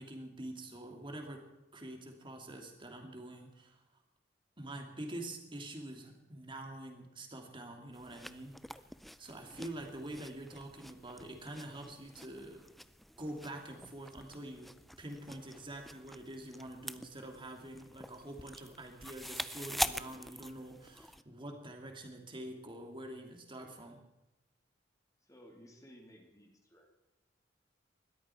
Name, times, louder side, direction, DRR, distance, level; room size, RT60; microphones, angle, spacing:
voice 1, 0.0-1.4 1.7-3.8 4.6-8.6 9.2-12.7 13.2-24.0, right 1 dB, 30° right, 2 dB, 2.7 m, -46 dB
sound 1, 7.9-21.2, equal, ahead, 0.4 m, -45 dB
voice 2, 25.2-26.9, equal, 20° left, 0 dB, 2.7 m, -57 dB
20.5 x 13.5 x 4.6 m, 0.95 s
head